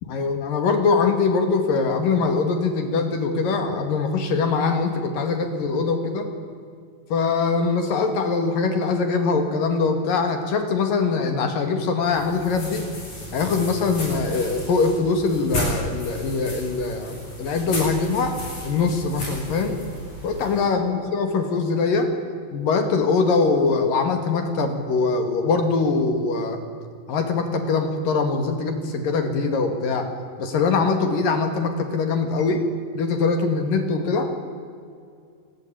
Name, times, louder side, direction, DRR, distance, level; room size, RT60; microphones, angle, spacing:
voice 1, 0.0-6.3 7.1-12.8 13.3-18.4 18.6-19.8 20.2-22.1 22.5-26.6 27.1-30.1 30.4-32.6 32.9-34.3, left 4 dB, 55° left, 7 dB, 3.4 m, -22 dB
sound 1, 12.0-20.6, left 1 dB, 40° left, 9.0 m, -33 dB
28.0 x 20.5 x 8.8 m, 2.3 s
omnidirectional pair, 5.1 m